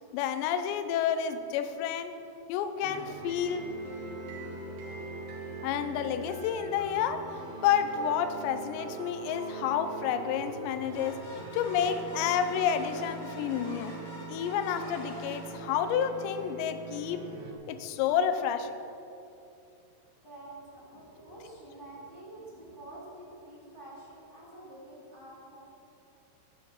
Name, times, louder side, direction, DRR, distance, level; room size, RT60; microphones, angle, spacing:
voice 1, 0.1-2.2 2.5-3.7 5.6-14.0 14.3-17.3 17.7-18.7, left 8 dB, 80° left, 9 dB, 2.6 m, -30 dB
sound 1, 2.8-17.5, right 3 dB, 70° right, 3.6 m, -42 dB
sound 2, 11.0-16.4, left 1 dB, 45° left, 3.7 m, -46 dB
voice 2, 20.2-25.6, right 1 dB, 5° left, -7 dB, 2.3 m, -48 dB
12.5 x 8.2 x 7.1 m, 2.8 s
omnidirectional pair, 5.8 m